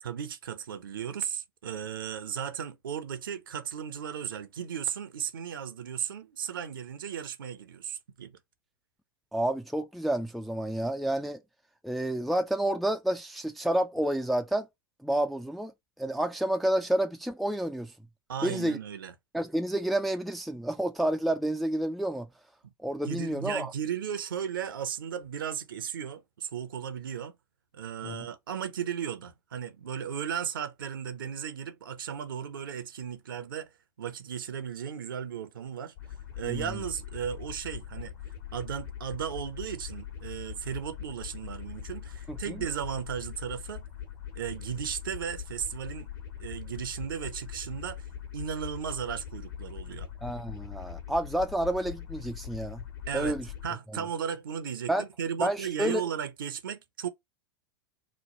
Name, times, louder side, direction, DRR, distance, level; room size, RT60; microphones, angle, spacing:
voice 1, 0.0-8.4 18.3-19.1 22.6-22.7 23.0-27.3 27.7-33.7 34.0-35.9 36.4-38.1 38.5-43.8 44.3-46.1 46.4-48.0 48.3-50.1 53.1-57.1, right 8 dB, 65° right, 0.6 m, -35 dB
voice 2, 9.3-11.4 11.8-14.7 15.0-15.7 16.0-17.9 18.4-18.8 19.3-22.3 22.8-23.7 28.0-28.2 36.4-36.6 42.3-42.4 50.2-52.8 53.1-53.4 54.9-55.0 55.4-56.0, right 1 dB, ahead, 0.3 m, -29 dB
sound 1, 36.0-53.7, left 9 dB, 55° left, 1.3 m, -42 dB
3.1 x 2.3 x 3.9 m
figure-of-eight pair, 90°, 12 cm